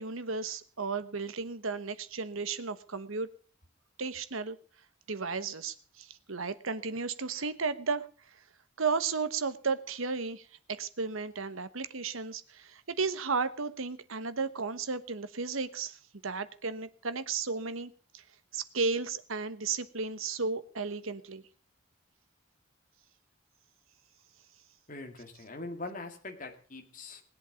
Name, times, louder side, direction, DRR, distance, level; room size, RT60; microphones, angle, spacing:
voice 1, 0.0-3.3 4.0-4.6 5.1-8.1 8.8-18.2 18.5-21.4, right 4 dB, 80° right, 12 dB, 1.2 m, -34 dB
voice 2, 24.9-27.2, left 2 dB, 40° left, 4 dB, 2.0 m, -42 dB
20.0 x 8.2 x 7.1 m, 0.42 s
head